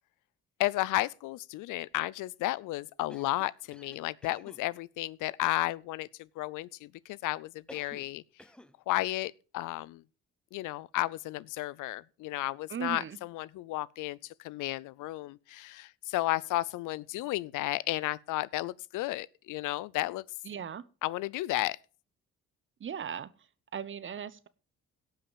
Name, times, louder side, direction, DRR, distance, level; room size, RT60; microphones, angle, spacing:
voice 1, 0.6-8.2 8.9-10.0 10.5-20.2 21.0-21.8, left 17 dB, 85° left, 0.5 m, -33 dB
Cough, 3.1-4.7 7.7-8.1 8.4-8.8, left 1 dB, 5° left, 0.7 m, -52 dB
voice 2, 12.7-13.2 20.4-20.8 22.8-23.3 23.7-24.5, right 8 dB, 40° right, 0.9 m, -37 dB
17.5 x 5.8 x 5.0 m
cardioid pair, 90°, 30 cm